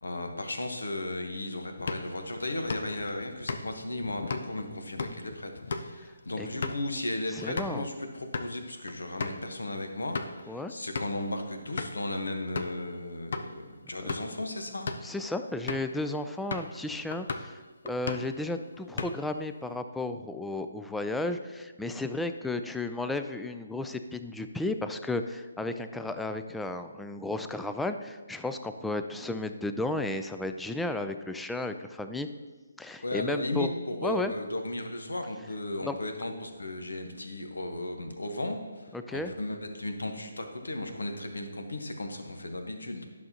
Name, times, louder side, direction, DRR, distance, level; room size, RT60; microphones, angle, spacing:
voice 1, 0.0-14.9 33.0-43.1, left 1 dB, 80° left, 5 dB, 1.1 m, -35 dB
sound 1, 1.8-7.8 8.2-8.5 8.9-9.0 9.2-9.4 9.9-10.4 10.9-11.2 11.8-12.1 12.6-12.8 13.3-13.5 13.9-14.4 14.7-15.1 15.7-16.0 16.5-16.8 17.1-17.5 17.9-18.4 18.7-19.4, left 4 dB, 60° left, 0.6 m, -36 dB
voice 2, 7.3-7.9 10.5-10.7 14.0-14.2 15.0-17.6 17.8-32.3 32.8-33.7 34.0-34.3 35.8-35.9 38.9-39.3, left 2 dB, 5° left, 8 dB, 0.3 m, -33 dB
10.5 x 6.3 x 2.9 m, 1.3 s
figure-of-eight pair, 150°, 0 cm